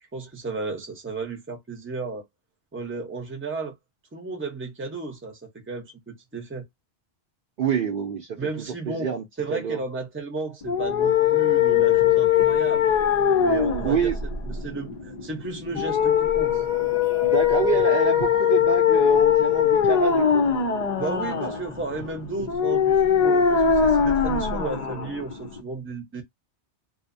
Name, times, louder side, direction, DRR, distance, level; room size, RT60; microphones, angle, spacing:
voice 1, 0.1-2.3 2.7-3.7 4.1-6.7 8.4-12.9 13.4-14.1 14.4-16.6 21.0-26.2, right 3 dB, 15° right, 0.6 m, -33 dB
voice 2, 7.6-9.2 9.5-9.8 13.8-14.2 17.2-20.4, right 6 dB, 60° right, 0.6 m, -27 dB
sound 1, 10.6-25.6, left 8 dB, 55° left, 0.5 m, -21 dB
2.7 x 2.1 x 2.5 m
omnidirectional pair, 1.1 m